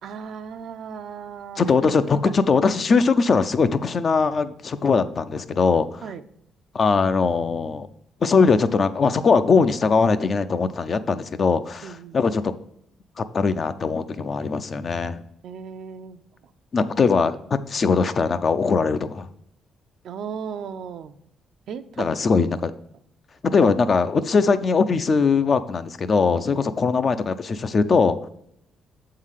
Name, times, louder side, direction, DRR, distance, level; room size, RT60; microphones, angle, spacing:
voice 1, 0.0-1.6 6.0-6.2 11.8-12.2 15.4-16.2 20.0-21.1 21.7-22.0, right 7 dB, 70° right, 9 dB, 0.5 m, -36 dB
voice 2, 1.6-6.0 6.7-7.9 8.2-12.5 13.2-15.2 16.7-17.4 17.7-19.3 22.0-22.7 23.4-28.2, left 4 dB, 45° left, 11 dB, 0.5 m, -21 dB
7.3 x 3.8 x 6.4 m, 0.74 s
cardioid pair, 90°, 0 cm